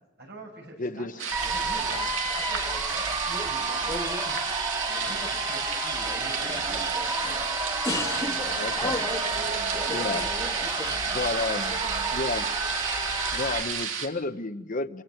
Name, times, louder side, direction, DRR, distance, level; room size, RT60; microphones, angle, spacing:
voice 1, 0.2-3.0 3.5-3.9 4.9-7.6 7.9-8.7 9.2-10.3 10.9-12.1, right 2 dB, 60° right, 7.1 m, -44 dB
voice 2, 0.8-1.2 8.5-9.0 9.9-10.3 11.1-11.7 12.1-12.5 13.3-15.0, left 3 dB, 45° left, 0.9 m, -31 dB
sound 1, 1.2-14.1, right 6 dB, 85° right, 2.9 m, -32 dB
sound 2, 1.3-13.6, right 2 dB, 20° right, 2.1 m, -31 dB
sound 3, 1.4-2.5 2.8-3.6 3.9-5.5 5.9-7.5 7.8-11.0, left 2 dB, 15° left, 1.6 m, -36 dB
29.5 x 16.5 x 9.3 m
head